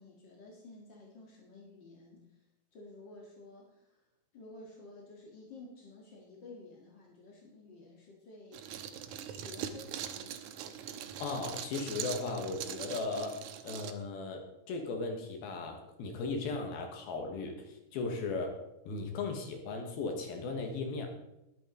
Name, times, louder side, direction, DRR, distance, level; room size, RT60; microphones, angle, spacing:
voice 1, 0.0-2.4 2.7-4.0 4.3-8.8 9.3-10.4, left 2 dB, 50° left, -2 dB, 1.3 m, -52 dB
sound 1, 8.5-13.9, right 9 dB, 85° right, 1.7 m, -42 dB
voice 2, 11.2-18.6 18.9-21.1, left 3 dB, 70° left, 3 dB, 3.2 m, -37 dB
20.5 x 8.6 x 3.9 m, 0.89 s
omnidirectional pair, 4.7 m